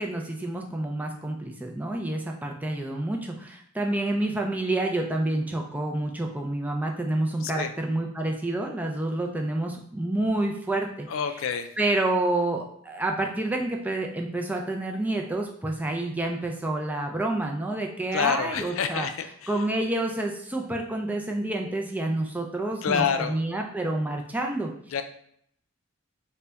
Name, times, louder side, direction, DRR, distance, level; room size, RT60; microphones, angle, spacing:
voice 1, 0.0-11.1 11.8-19.1 19.5-24.7, right 2 dB, 10° right, 2 dB, 0.3 m, -28 dB
voice 2, 7.4-7.7 11.1-11.7 18.1-19.5 22.8-23.4 24.9-25.0, left 7 dB, 75° left, 8 dB, 0.4 m, -27 dB
3.9 x 2.2 x 3.4 m, 0.68 s
head